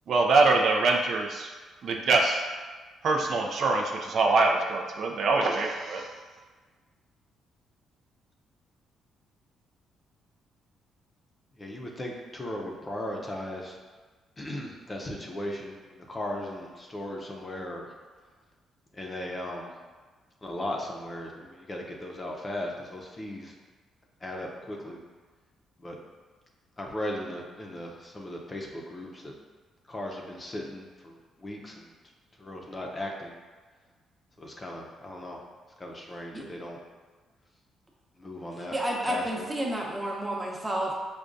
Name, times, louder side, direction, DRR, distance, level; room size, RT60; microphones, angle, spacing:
voice 1, 0.1-1.5 1.8-2.4 3.0-6.1, right 3 dB, 60° right, 2 dB, 0.3 m, -24 dB
voice 2, 11.6-13.8 14.4-17.9 18.9-19.7 20.4-23.5 24.2-25.0 25.8-26.0 26.8-29.3 29.9-31.9 32.4-33.3 34.4-35.4 35.8-36.8 38.2-38.8 39.1-39.4, left 1 dB, 25° left, 0 dB, 0.5 m, -37 dB
voice 3, 38.7-40.9, right 1 dB, 20° right, -1 dB, 0.7 m, -30 dB
4.9 x 2.2 x 2.5 m, 1.4 s
cardioid pair, 90°, 0 cm